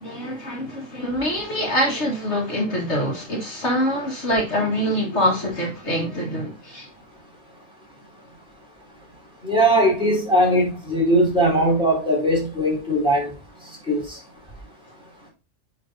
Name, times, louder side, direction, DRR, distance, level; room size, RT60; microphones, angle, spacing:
voice 1, 0.0-6.9, equal, 60° left, 2.1 m, -24 dB
voice 2, 9.4-13.3 13.9-14.2, equal, 5° right, 4.1 m, -19 dB
9.2 x 3.9 x 3.9 m
omnidirectional pair, 1.3 m